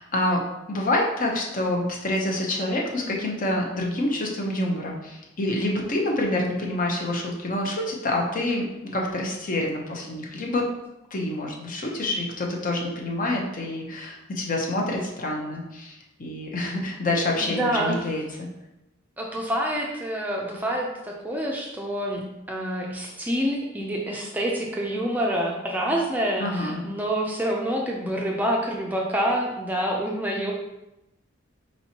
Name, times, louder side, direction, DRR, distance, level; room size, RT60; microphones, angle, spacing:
voice 1, 0.0-8.7 8.9-10.7 11.1-18.5 26.4-26.9, left 1 dB, 40° left, 0 dB, 0.8 m, -27 dB
voice 2, 17.4-18.1 19.2-30.5, right 1 dB, 10° right, -1 dB, 0.5 m, -27 dB
4.3 x 4.3 x 2.8 m, 0.93 s
head